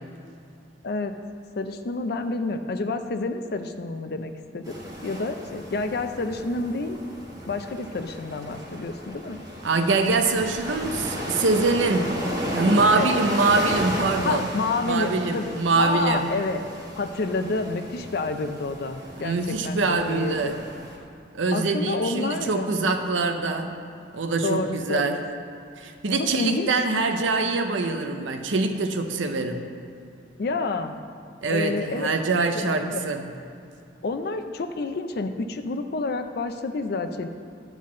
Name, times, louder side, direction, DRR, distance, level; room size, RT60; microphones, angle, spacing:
voice 1, 1.6-7.0 7.5-9.4 12.9-13.1 14.2-15.5 15.8-16.6 17.0-19.8 20.1-20.6 21.5-22.7 24.4-25.2 26.2-26.7 30.4-31.0 31.5-32.1 32.5-32.7 32.9-33.0 34.0-37.3, left 3 dB, 55° left, 8 dB, 0.4 m, -29 dB
sound 1, 4.6-21.0, equal, 20° right, 1.3 m, -34 dB
voice 2, 9.6-12.1 12.5-14.4 14.8-16.2 19.2-20.6 21.3-23.7 24.1-25.2 25.8-29.6 31.4-33.2, right 3 dB, 90° right, 5 dB, 0.6 m, -24 dB
10.5 x 4.0 x 7.3 m, 2.4 s
head